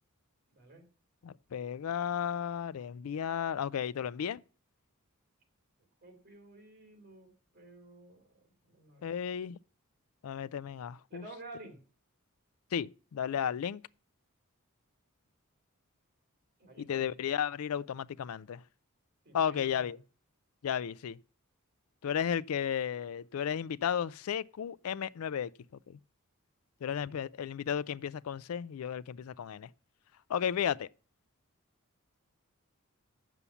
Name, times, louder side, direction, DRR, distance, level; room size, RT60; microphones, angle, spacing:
voice 1, 0.5-0.8 6.0-9.2 11.1-11.8 16.6-17.1 19.2-19.9, right 2 dB, 45° right, 3.6 m, -51 dB
voice 2, 1.2-4.4 9.0-9.6 10.2-11.2 12.7-13.8 16.8-18.6 19.3-20.0 20.6-21.2 22.0-25.5 25.9-26.0 26.8-29.7 30.3-30.9, left 8 dB, 75° left, 0.4 m, -34 dB
8.3 x 7.0 x 7.1 m
head